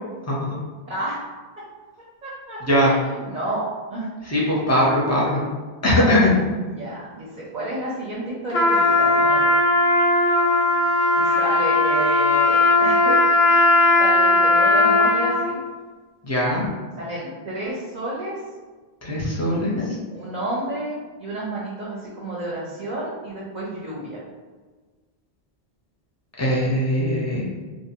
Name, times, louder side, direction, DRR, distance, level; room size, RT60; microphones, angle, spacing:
voice 1, 0.3-0.6 2.7-2.9 4.3-5.4 5.8-6.3 16.3-16.6 19.0-19.8 26.4-27.5, left 1 dB, 20° left, -5 dB, 0.4 m, -20 dB
voice 2, 0.9-1.2 2.2-4.1 6.6-9.6 11.1-13.2 14.0-15.6 17.0-18.3 20.1-24.2, right 1 dB, 50° right, -6 dB, 0.6 m, -31 dB
Trumpet, 8.5-15.5, left 2 dB, 85° left, 0.8 m, -18 dB
2.5 x 2.1 x 2.8 m, 1.4 s
omnidirectional pair, 1.0 m